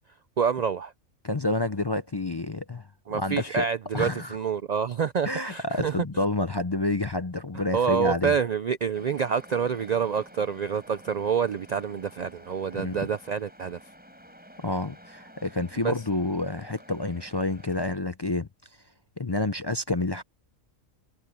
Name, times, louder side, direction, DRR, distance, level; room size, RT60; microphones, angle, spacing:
voice 1, 0.4-0.9 3.1-6.0 7.7-13.8 15.8-15.9, right 7 dB, 85° right, 0.3 m, -27 dB
voice 2, 1.2-2.9 3.1-3.7 3.9-4.4 5.2-8.3 12.7-13.0 14.6-18.5 19.2-20.2, left 2 dB, 35° left, 0.4 m, -29 dB
sound 1, 8.9-18.0, equal, 5° right, 5.8 m, -51 dB
omnidirectional pair, 1.4 m